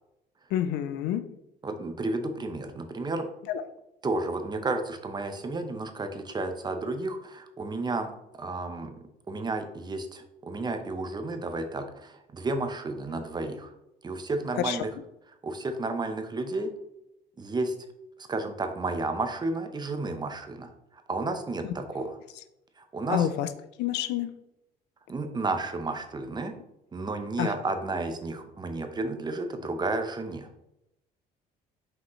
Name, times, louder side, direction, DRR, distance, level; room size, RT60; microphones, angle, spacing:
voice 1, 0.5-1.3 3.5-3.6 14.6-14.8 23.1-23.5 23.8-24.3 27.4-27.5, left 11 dB, 85° left, 11 dB, 0.5 m, -28 dB
voice 2, 1.6-3.3 4.0-9.0 9.3-13.7 14.0-14.9 15.4-16.7 17.4-17.7 18.3-20.7 21.1-22.2 22.8-23.3 25.1-26.5 26.9-30.5, right 2 dB, 25° right, 6 dB, 0.8 m, -32 dB
6.0 x 5.1 x 3.1 m, 0.85 s
cardioid pair, 110°, 17 cm